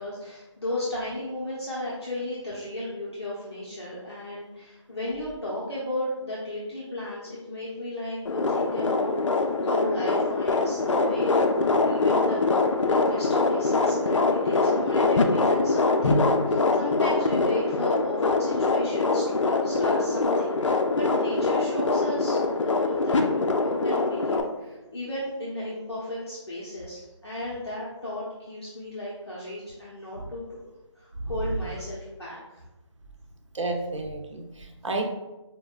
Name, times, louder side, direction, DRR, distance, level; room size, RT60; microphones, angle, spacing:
voice 1, 0.0-12.4 12.9-30.6 31.0-32.6, left 1 dB, 55° left, -7 dB, 0.8 m, -35 dB
sound 1, 8.2-24.4, left 3 dB, 75° left, 0.5 m, -23 dB
voice 2, 33.5-35.0, right 2 dB, 75° right, 2 dB, 0.7 m, -31 dB
5.0 x 2.2 x 2.4 m, 1.1 s
figure-of-eight pair, 175°, 16 cm